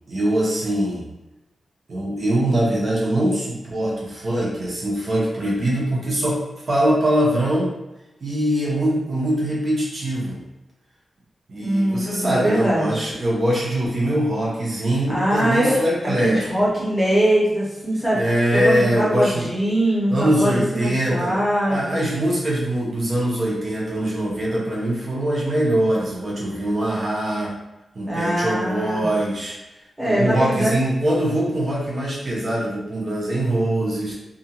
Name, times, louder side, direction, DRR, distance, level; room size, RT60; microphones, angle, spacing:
voice 1, 0.1-1.0 1.9-6.4 6.7-7.7 8.2-10.4 11.5-16.4 18.1-19.5 20.1-21.3 21.7-27.5 27.9-29.6 30.0-34.1, right 1 dB, 40° right, -5 dB, 0.8 m, -22 dB
voice 2, 11.6-12.9 15.1-15.8 16.2-18.2 18.5-22.0 28.1-29.1 30.0-30.8, right 1 dB, 10° right, -8 dB, 0.9 m, -22 dB
2.5 x 2.4 x 2.8 m, 0.97 s
wide cardioid pair, 180°, 0 cm